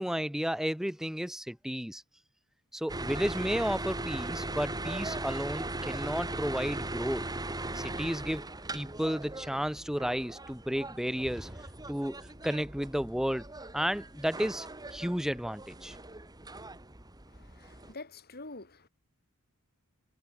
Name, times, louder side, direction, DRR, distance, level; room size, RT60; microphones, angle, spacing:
voice 1, 0.0-2.0 2.7-7.2 7.7-8.5 8.7-11.6 11.9-12.2 12.4-13.5 13.7-16.0, equal, ahead, 0.9 m, -32 dB
sound 1, 2.9-17.9, right 2 dB, 15° right, 2.8 m, -39 dB
voice 2, 17.3-18.9, left 2 dB, 45° left, 5.5 m, -47 dB
head